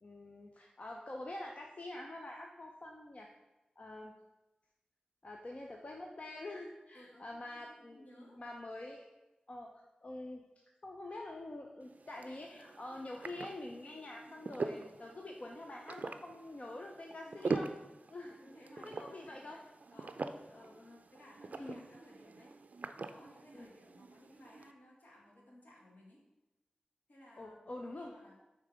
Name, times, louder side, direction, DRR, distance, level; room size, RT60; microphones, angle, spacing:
voice 1, 0.0-3.3 3.8-4.1 5.2-9.1 9.5-9.7 10.0-17.7 18.1-18.4 18.8-19.6 20.5-21.0 21.6-21.8 23.5-23.7 27.4-28.1, left 2 dB, 50° left, 0 dB, 0.6 m, -46 dB
voice 2, 6.9-8.4 18.2-19.6 19.9-26.3 27.1-27.7 27.9-28.4, equal, 70° left, -3 dB, 1.7 m, -59 dB
sound 1, 11.8-24.7, right 3 dB, 65° right, 0.4 m, -44 dB
6.4 x 3.3 x 5.1 m, 1.0 s
cardioid pair, 45°, 3 cm